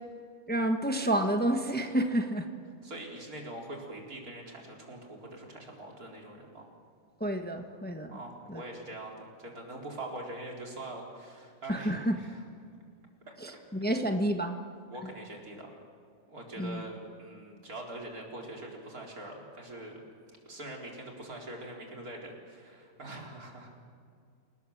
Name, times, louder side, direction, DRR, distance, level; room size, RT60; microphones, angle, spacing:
voice 1, 0.5-2.5 7.2-8.1 8.5-8.6 11.7-12.2 13.4-14.6 15.0-15.1 16.6-16.8, right 1 dB, 5° left, 5 dB, 1.2 m, -29 dB
voice 2, 2.8-6.7 8.1-12.4 13.3-13.4 14.9-15.7 16.3-20.0 20.3-23.8, right 1 dB, 80° right, 0 dB, 4.5 m, -43 dB
28.5 x 19.0 x 7.2 m, 2.3 s
omnidirectional pair, 1.5 m